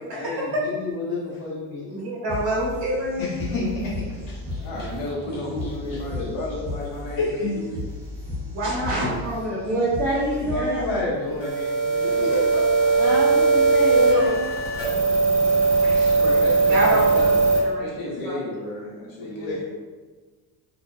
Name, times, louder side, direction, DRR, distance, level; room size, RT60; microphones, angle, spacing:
voice 1, 0.1-1.9 3.2-4.6 5.3-5.7 7.2-7.5 10.4-12.3 13.9-14.4 19.2-19.6, left 2 dB, 80° left, -10 dB, 1.3 m, -30 dB
voice 2, 1.9-3.4 8.5-9.8 15.4-15.5 15.8-16.1 16.7-18.0 18.2-18.4, right 1 dB, 65° right, -6 dB, 0.8 m, -27 dB
sound 1, 2.3-11.3, left 2 dB, 10° right, 0.9 m, -35 dB
voice 3, 4.6-7.8 12.0-13.2 16.2-17.2 17.8-19.6, left 1 dB, 50° left, -3 dB, 0.7 m, -32 dB
voice 4, 9.6-10.8 13.0-14.5, right 1 dB, 5° left, -10 dB, 0.4 m, -26 dB
sound 2, 11.4-17.6, right 3 dB, 30° right, 1.1 m, -19 dB
2.7 x 2.0 x 2.3 m, 1.4 s
cardioid pair, 175°, 44 cm